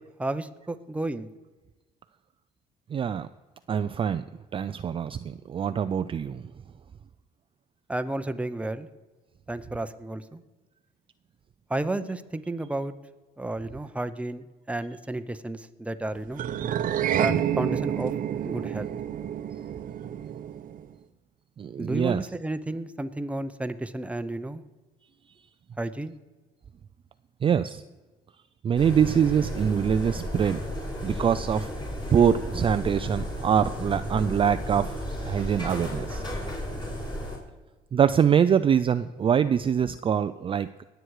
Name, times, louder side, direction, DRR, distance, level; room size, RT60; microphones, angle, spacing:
voice 1, 0.2-1.3 7.9-8.9 9.5-10.4 11.7-12.9 13.4-16.4 17.2-18.1 18.4-18.9 21.8-24.6 25.8-26.1, right 2 dB, 5° right, 10 dB, 0.8 m, -32 dB
voice 2, 2.9-3.3 3.7-4.3 4.5-6.5 21.6-22.3 27.4-27.8 28.6-30.6 31.0-31.7 32.1-36.2 37.9-40.8, right 8 dB, 30° right, 11 dB, 0.4 m, -24 dB
sound 1, 16.3-20.9, right 10 dB, 55° right, 0.8 m, -29 dB
sound 2, 28.8-37.4, equal, 25° left, 4.7 m, -33 dB
20.0 x 8.0 x 4.8 m, 1.2 s
cardioid pair, 110°, 17 cm